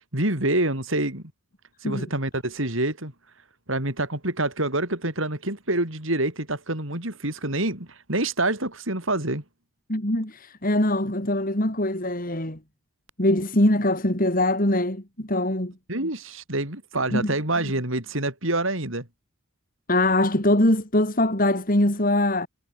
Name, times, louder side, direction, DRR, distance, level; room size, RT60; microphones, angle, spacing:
voice 1, 0.1-1.2 1.8-3.1 3.7-9.4 15.9-19.1, right 2 dB, 70° right, 6.8 m, -26 dB
voice 2, 9.9-12.6 13.2-15.7 17.1-17.3 19.9-22.5, left 1 dB, 40° left, 4.0 m, -22 dB
head